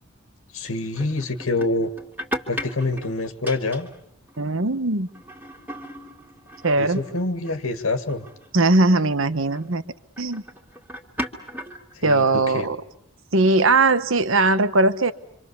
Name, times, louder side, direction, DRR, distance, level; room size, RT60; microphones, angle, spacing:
voice 1, 0.5-1.9 2.5-3.9 6.8-8.3 11.9-12.7, left 2 dB, 70° left, 7 dB, 1.8 m, -26 dB
sound 1, 0.9-4.0 4.3-4.6 4.9-7.6 8.1-8.5 9.5-9.8 10.2-12.4, equal, 10° right, 2.4 m, -36 dB
voice 2, 4.4-5.1 6.6-7.0 8.5-9.8 10.2-10.4 12.0-12.8 13.3-15.1, right 2 dB, 60° right, 12 dB, 1.1 m, -19 dB
27.5 x 26.5 x 7.0 m, 0.75 s
head